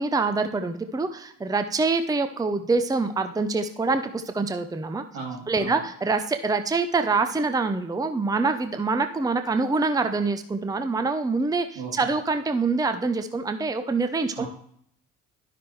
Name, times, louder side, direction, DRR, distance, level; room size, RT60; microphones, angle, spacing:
voice 1, 0.0-5.0 5.5-14.5, right 3 dB, 10° right, 8 dB, 0.7 m, -25 dB
voice 2, 5.1-5.8 11.7-12.1 14.3-14.5, right 5 dB, 75° right, -2 dB, 2.8 m, -36 dB
11.5 x 5.8 x 3.2 m, 0.68 s
hypercardioid pair, 55°, 37 cm